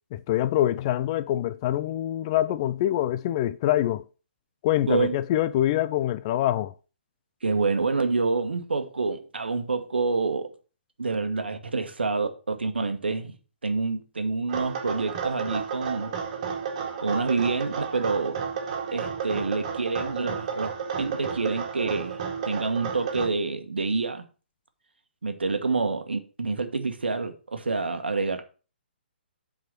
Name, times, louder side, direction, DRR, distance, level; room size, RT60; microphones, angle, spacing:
voice 1, 0.1-4.0 4.6-6.7, left 13 dB, 30° left, 0.4 m, -25 dB
voice 2, 7.4-10.5 11.0-13.4 13.6-16.1 17.0-18.4 18.9-22.2 22.5-24.2 25.2-28.4, right 4 dB, 70° right, 1.3 m, -27 dB
sound 1, 14.5-23.3, right 6 dB, 40° right, 2.0 m, -32 dB
7.8 x 4.9 x 5.9 m
figure-of-eight pair, 130°, 6 cm